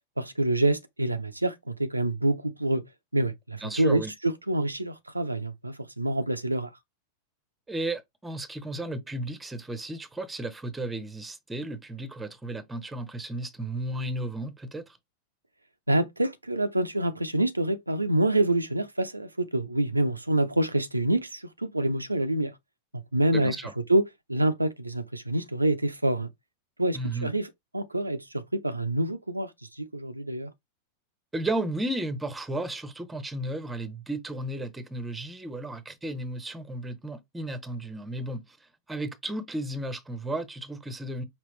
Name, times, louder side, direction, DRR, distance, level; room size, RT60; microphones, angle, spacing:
voice 1, 0.2-1.5 1.8-2.8 3.1-6.7 15.9-22.5 23.1-23.5 23.9-26.3 26.8-27.5 27.7-29.5 29.8-30.5, right 1 dB, 85° right, 0.5 m, -26 dB
voice 2, 3.6-4.1 7.7-14.8 23.3-23.7 26.9-27.3 31.3-38.6 38.9-41.2, right 1 dB, 10° right, 0.8 m, -34 dB
5.1 x 2.9 x 3.2 m
figure-of-eight pair, 90°, 0 cm